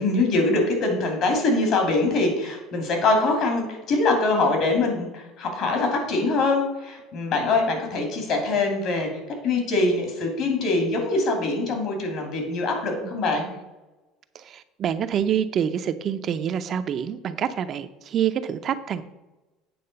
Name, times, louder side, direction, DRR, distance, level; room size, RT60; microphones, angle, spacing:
voice 1, 0.0-9.1 9.4-13.5, left 3 dB, 55° left, 2 dB, 2.7 m, -23 dB
voice 2, 14.3-19.0, right 9 dB, 40° right, 10 dB, 0.5 m, -26 dB
8.6 x 3.8 x 6.7 m, 1.1 s
cardioid pair, 130°, 0 cm